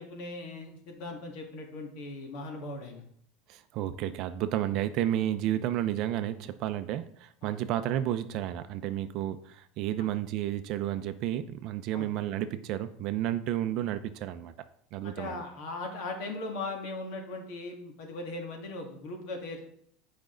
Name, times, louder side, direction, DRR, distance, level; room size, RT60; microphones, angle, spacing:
voice 1, 0.0-3.0 7.4-7.5 11.9-12.1 15.0-19.6, left 2 dB, 55° left, 2 dB, 1.9 m, -39 dB
voice 2, 3.5-14.5 14.9-15.4, right 12 dB, 45° right, 11 dB, 0.5 m, -31 dB
8.6 x 5.2 x 3.8 m, 0.67 s
cardioid pair, 165°, 0 cm